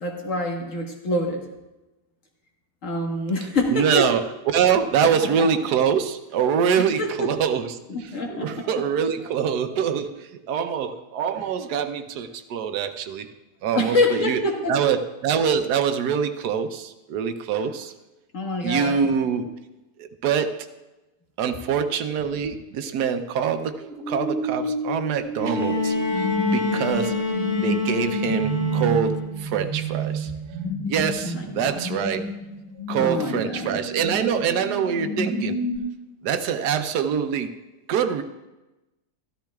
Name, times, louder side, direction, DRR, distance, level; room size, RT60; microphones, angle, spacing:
voice 1, 0.0-1.4 2.8-4.1 5.0-5.5 7.0-7.3 7.9-8.7 13.7-14.7 18.3-19.0 31.2-31.8 33.0-33.7, left 2 dB, 55° left, 1 dB, 1.8 m, -26 dB
voice 2, 3.7-4.3 4.5-13.3 13.6-14.4 14.7-17.9 18.6-19.5 20.0-20.7 21.4-27.1 27.6-30.6 30.9-32.2 32.9-35.6 36.2-37.5 37.9-38.2, right 7 dB, 85° right, 9 dB, 1.3 m, -24 dB
sound 1, 23.6-35.8, right 1 dB, 5° left, 2.4 m, -30 dB
Bowed string instrument, 25.4-29.4 30.6-30.7, left 2 dB, 85° left, 5.3 m, -27 dB
13.5 x 13.0 x 2.3 m, 1.0 s
omnidirectional pair, 1.7 m